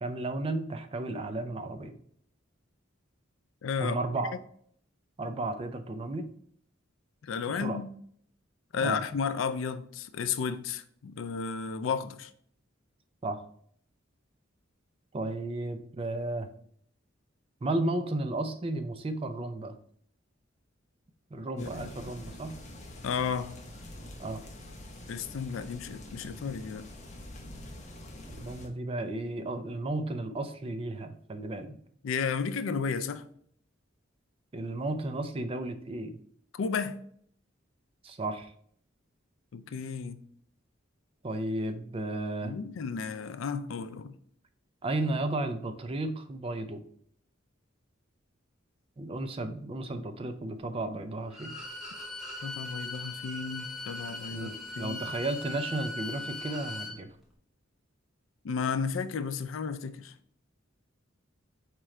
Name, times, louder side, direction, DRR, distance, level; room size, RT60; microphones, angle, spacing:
voice 1, 0.0-2.0 3.8-4.3 5.2-6.3 7.5-7.8 8.8-9.0 13.2-13.4 15.1-16.5 17.6-19.7 21.3-22.6 24.2-24.4 28.3-31.7 34.5-36.2 38.0-38.5 41.2-42.5 44.8-46.8 49.0-51.6 54.3-57.1, right 2 dB, 30° right, 0.4 m, -33 dB
voice 2, 3.6-4.0 7.2-7.9 8.7-12.3 21.6-21.9 23.0-23.6 25.1-26.9 32.0-33.2 36.5-37.0 39.5-40.2 42.4-44.1 52.4-55.0 58.4-60.1, left 6 dB, 80° left, 0.4 m, -33 dB
sound 1, 21.6-28.7, left 1 dB, 35° left, 0.7 m, -45 dB
Bowed string instrument, 51.3-57.0, left 2 dB, ahead, 0.7 m, -40 dB
4.5 x 3.7 x 3.1 m
head